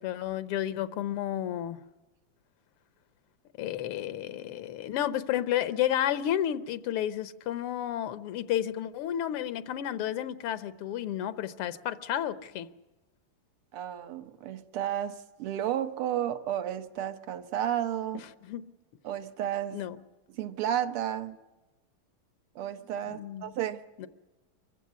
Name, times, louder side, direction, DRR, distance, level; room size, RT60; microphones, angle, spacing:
voice 1, 0.0-1.8 3.6-12.7 18.4-18.6 19.7-20.0 23.1-23.4 24.0-24.1, left 11 dB, 90° left, 1.8 m, -31 dB
voice 2, 13.7-18.2 19.0-19.8 20.3-21.4 22.6-23.8, right 10 dB, 85° right, 1.9 m, -32 dB
24.5 x 15.0 x 9.5 m
omnidirectional pair, 2.4 m